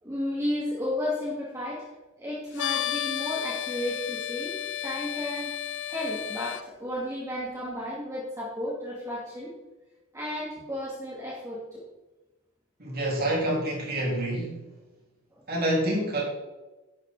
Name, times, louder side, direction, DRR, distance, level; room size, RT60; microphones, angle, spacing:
voice 1, 0.0-1.9 2.2-4.5 4.8-5.5 5.9-9.5 10.1-11.8 15.3-15.4, left 1 dB, 15° right, -7 dB, 2.5 m, -33 dB
sound 1, 2.6-6.6, left 11 dB, 55° left, 0.4 m, -32 dB
voice 2, 12.8-14.6 15.5-16.2, right 1 dB, 45° right, -3 dB, 3.9 m, -27 dB
10.5 x 8.2 x 4.9 m, 1.1 s
head